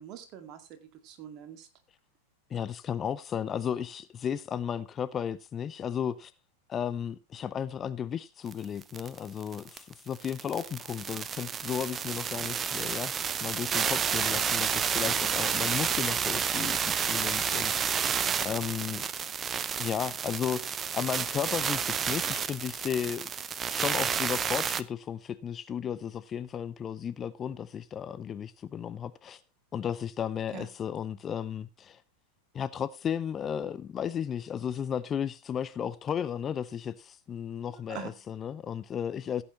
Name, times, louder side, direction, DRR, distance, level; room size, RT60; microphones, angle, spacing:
voice 1, 0.0-1.7 30.5-30.7 37.9-38.2, right 10 dB, 40° right, 2.0 m, -44 dB
voice 2, 2.5-6.3 6.7-13.1 13.4-18.0 18.4-19.0 19.8-23.3 23.7-29.4 29.7-32.0 32.5-39.4, left 8 dB, 25° left, 0.5 m, -34 dB
sound 1, 8.5-8.6 8.8-24.8, right 7 dB, 20° right, 0.6 m, -30 dB
16.0 x 8.5 x 3.0 m
figure-of-eight pair, 90°, 0 cm